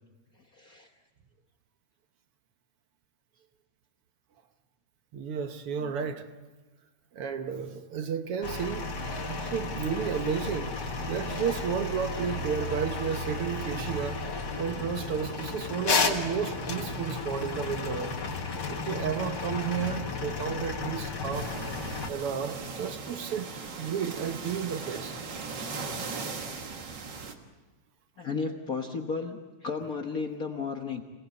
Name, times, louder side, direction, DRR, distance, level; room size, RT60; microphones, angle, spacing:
voice 1, 0.3-0.9 5.8-5.9 25.6-26.3 28.2-31.0, left 4 dB, 60° left, 0.9 m, -35 dB
voice 2, 5.1-6.3 7.1-8.9 9.3-10.7 11.1-14.3 14.6-18.2 18.7-21.5 22.1-25.2, right 7 dB, 60° right, 1.6 m, -32 dB
sound 1, 8.4-22.1, left 3 dB, 40° left, 2.0 m, -33 dB
sound 2, 21.3-27.3, right 4 dB, 45° right, 1.9 m, -38 dB
26.5 x 18.5 x 8.3 m
omnidirectional pair, 3.4 m